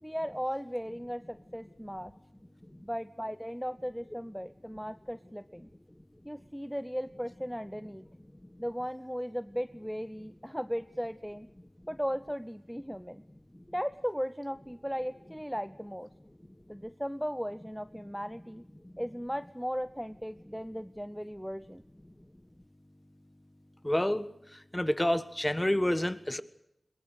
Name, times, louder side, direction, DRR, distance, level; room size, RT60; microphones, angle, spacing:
voice 1, 0.0-2.1 2.8-5.7 6.2-8.1 8.6-11.5 11.9-13.2 13.7-16.1 16.7-18.6 19.0-21.8, equal, ahead, 0.7 m, -36 dB
voice 2, 23.8-24.3 24.7-26.4, left 1 dB, 15° left, 1.5 m, -28 dB
22.5 x 22.0 x 6.5 m
wide cardioid pair, 45°, 0 cm